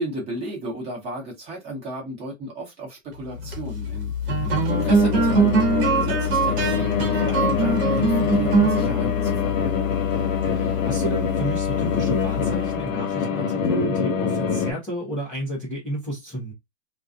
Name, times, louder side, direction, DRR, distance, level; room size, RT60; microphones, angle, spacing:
voice 1, 0.0-4.1 4.4-4.5 4.8-9.8, right 1 dB, 15° right, 0.8 m, -34 dB
sound 1, 3.3-12.9, right 1 dB, 40° right, 1.0 m, -23 dB
voice 2, 4.4-4.7 10.4-16.5, right 1 dB, 5° left, 0.4 m, -32 dB
sound 2, 4.7-14.7, left 6 dB, 80° left, 0.9 m, -25 dB
2.3 x 2.2 x 2.4 m
hypercardioid pair, 145°, 39 cm